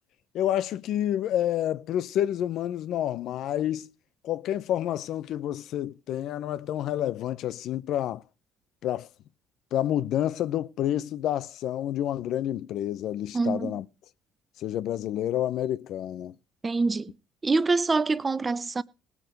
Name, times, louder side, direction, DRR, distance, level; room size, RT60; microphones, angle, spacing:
voice 1, 0.3-3.9 4.2-8.2 8.8-9.1 9.7-13.8 14.6-16.3, left 11 dB, 70° left, 0.6 m, -29 dB
voice 2, 13.3-13.8 16.6-17.1 17.4-18.8, right 3 dB, 25° right, 0.7 m, -25 dB
18.5 x 6.2 x 5.2 m
supercardioid pair, 80°, 0 cm